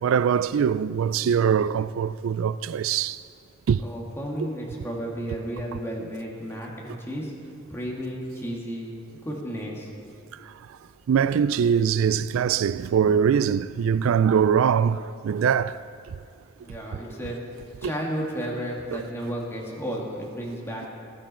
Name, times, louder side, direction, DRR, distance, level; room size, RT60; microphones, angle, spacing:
voice 1, 0.0-3.2 3.7-3.8 10.5-10.6 11.1-15.8 17.8-17.9 18.9-19.0, right 7 dB, 75° right, 0.3 m, -22 dB
voice 2, 3.8-7.3 7.7-10.1 16.6-20.8, equal, 10° left, 2.3 m, -33 dB
14.5 x 13.0 x 4.4 m
head